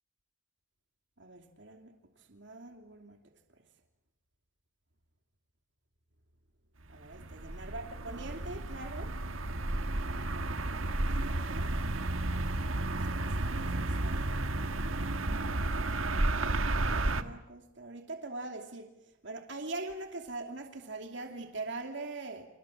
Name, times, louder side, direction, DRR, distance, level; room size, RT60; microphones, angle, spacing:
voice 1, 1.2-1.9 2.3-3.2 6.9-9.1 11.1-11.7 12.9-14.4 16.7-18.9 19.2-22.5, right 2 dB, 65° right, 4 dB, 2.8 m, -42 dB
sound 1, 6.9-17.2, right 2 dB, 90° right, 1.5 m, -32 dB
30.0 x 27.0 x 7.3 m, 0.90 s
head